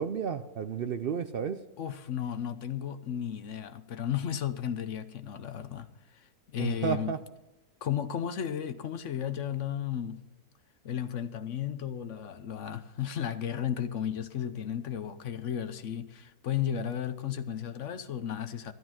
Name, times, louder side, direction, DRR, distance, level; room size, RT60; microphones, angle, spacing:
voice 1, 0.0-1.6 6.6-7.2, right 7 dB, 75° right, 0.5 m, -32 dB
voice 2, 1.8-7.2 7.8-10.2 10.8-18.7, left 9 dB, 55° left, 1.0 m, -34 dB
12.5 x 12.0 x 5.9 m
omnidirectional pair, 1.6 m